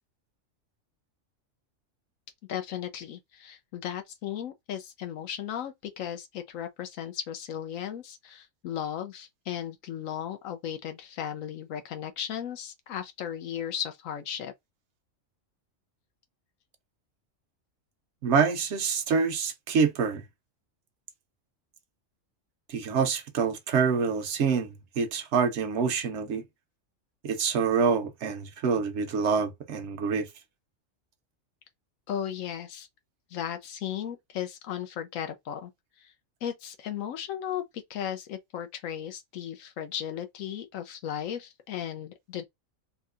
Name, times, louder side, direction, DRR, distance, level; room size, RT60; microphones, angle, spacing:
voice 1, 2.5-14.5 32.1-32.9 33.3-35.7 36.0-36.1 36.4-42.4, left 9 dB, 80° left, 1.1 m, -36 dB
voice 2, 18.2-20.2 22.7-26.4 27.2-30.3, right 5 dB, 65° right, 0.8 m, -26 dB
3.5 x 2.7 x 2.4 m
omnidirectional pair, 1.4 m